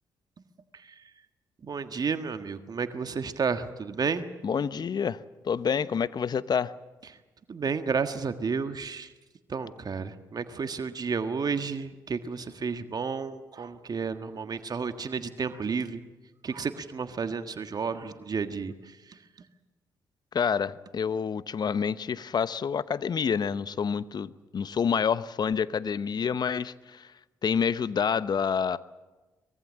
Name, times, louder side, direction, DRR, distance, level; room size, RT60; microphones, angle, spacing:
voice 1, 1.6-4.3 7.5-9.1 9.5-16.0 16.4-18.7 19.1-19.2, right 5 dB, 45° right, 9 dB, 1.6 m, -31 dB
voice 2, 4.4-6.7 20.3-27.1 27.4-28.8, left 6 dB, 50° left, 16 dB, 0.9 m, -28 dB
24.0 x 21.5 x 7.5 m, 1.2 s
hypercardioid pair, 45°, 9 cm